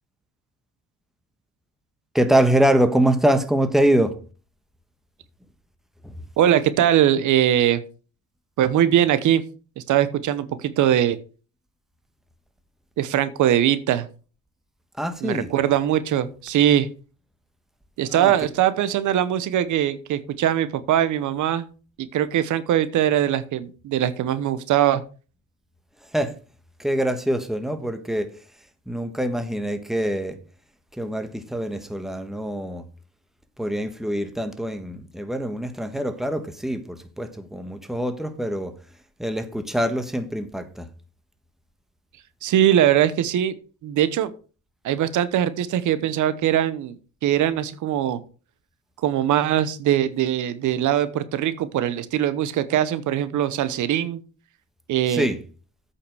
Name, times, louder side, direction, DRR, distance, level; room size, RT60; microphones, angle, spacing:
voice 1, 2.1-4.2 6.0-6.2 15.0-15.5 18.1-18.5 26.1-26.4 26.8-28.5 28.9-30.4 30.9-32.9 33.6-38.8 39.2-40.9 55.1-55.4, right 1 dB, ahead, 1.3 m, -24 dB
voice 2, 6.4-7.8 8.6-9.4 9.8-11.2 13.0-14.0 15.2-16.9 18.0-21.7 22.0-25.0 42.4-43.5 43.8-44.3 44.8-47.0 47.2-48.2 49.0-54.2 54.9-55.3, right 11 dB, 80° right, 1.0 m, -21 dB
8.5 x 5.7 x 6.2 m
cardioid pair, 90°, 30 cm